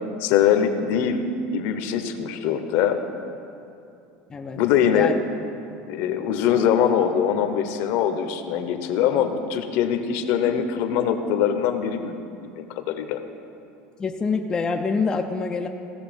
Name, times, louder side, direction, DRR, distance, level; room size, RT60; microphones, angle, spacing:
voice 1, 0.2-3.0 4.5-5.1 5.8-12.1 12.6-13.2, left 8 dB, 60° left, 8 dB, 0.8 m, -22 dB
voice 2, 4.3-4.6 4.9-5.1 14.0-15.7, left 4 dB, 15° left, 4 dB, 0.4 m, -25 dB
15.5 x 6.8 x 5.2 m, 2.6 s
cardioid pair, 160°, 5 cm